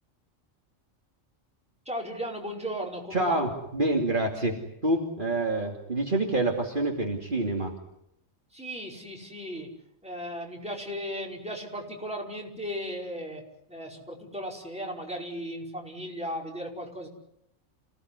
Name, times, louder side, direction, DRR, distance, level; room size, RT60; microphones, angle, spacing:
voice 1, 1.9-3.5 8.5-9.7 10.0-13.4 13.7-17.1, equal, 5° right, -1 dB, 5.2 m, -36 dB
voice 2, 3.1-7.7, right 2 dB, 40° right, 1 dB, 2.9 m, -27 dB
28.5 x 17.5 x 9.8 m, 0.80 s
omnidirectional pair, 1.3 m